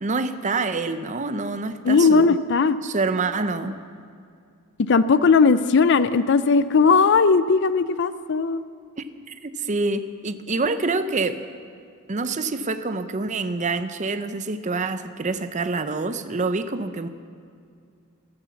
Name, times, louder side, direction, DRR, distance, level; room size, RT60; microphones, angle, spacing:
voice 1, 0.0-2.3 2.8-3.8 9.0-9.1 9.4-11.4 12.1-17.1, right 3 dB, 35° right, 11 dB, 0.7 m, -26 dB
voice 2, 1.8-2.8 4.8-8.6, left 4 dB, 60° left, 14 dB, 0.5 m, -18 dB
14.5 x 13.0 x 7.1 m, 2.3 s
head